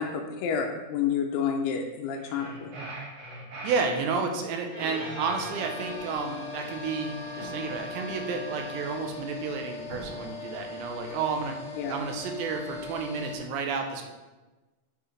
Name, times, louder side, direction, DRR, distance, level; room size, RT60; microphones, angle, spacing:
voice 1, 0.0-2.7 11.8-12.0, left 7 dB, 85° left, 2 dB, 2.3 m, -29 dB
sound 1, 2.1-4.3 4.9-6.2, right 2 dB, 60° right, 4.0 m, -42 dB
voice 2, 3.6-11.6 11.9-14.0, right 5 dB, 80° right, 3 dB, 2.9 m, -31 dB
Bowed string instrument, 4.7-9.2, equal, 15° right, 2.0 m, -42 dB
sound 2, 5.5-13.4, left 3 dB, 30° left, 1.2 m, -40 dB
7.9 x 7.2 x 3.3 m, 1.2 s
omnidirectional pair, 5.4 m